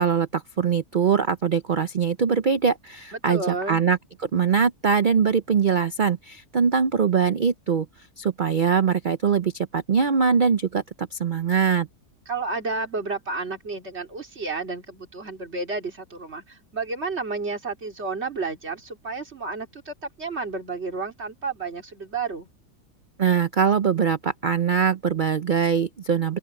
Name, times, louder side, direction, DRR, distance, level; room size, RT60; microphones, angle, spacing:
voice 1, 0.0-7.9 8.2-11.9 23.2-26.4, right 6 dB, 85° right, 0.4 m, -22 dB
voice 2, 3.1-3.8 12.3-22.5, right 3 dB, 40° right, 3.4 m, -31 dB
open air
omnidirectional pair, 1.7 m